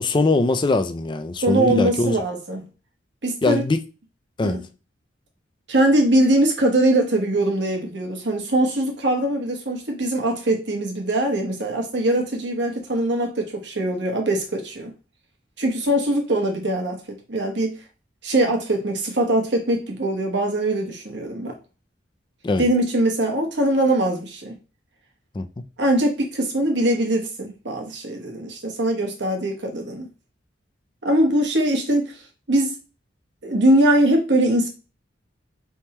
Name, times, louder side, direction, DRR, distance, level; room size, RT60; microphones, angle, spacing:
voice 1, 0.0-2.1 3.4-3.8 4.4-4.6 22.4-22.6 25.3-25.5, left 2 dB, 25° left, 0.4 m, -21 dB
voice 2, 1.4-2.7 3.2-3.7 4.4-4.6 5.7-14.9 15.6-17.8 18.2-21.6 22.6-24.6 25.8-30.1 31.0-32.2 32.5-32.8 33.4-34.7, right 1 dB, 65° right, 1.1 m, -22 dB
3.5 x 2.9 x 4.3 m
head